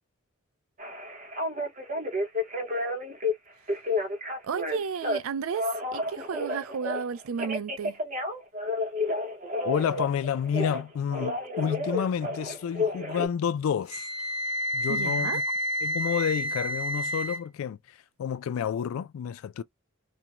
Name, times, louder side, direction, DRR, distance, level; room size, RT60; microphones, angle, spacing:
Telephone, 0.8-3.3 3.7-5.2 5.5-7.0 7.4-10.8 11.1-13.3, left 2 dB, 40° right, 0.8 m, -31 dB
voice 1, 4.4-8.0 14.9-15.4, right 6 dB, 80° right, 0.4 m, -33 dB
voice 2, 9.6-14.1 14.7-15.4 15.8-17.8 18.2-19.6, left 8 dB, 75° left, 0.3 m, -29 dB
Wind instrument woodwind instrument, 13.9-17.4, equal, 5° right, 0.9 m, -29 dB
2.4 x 2.1 x 2.8 m
head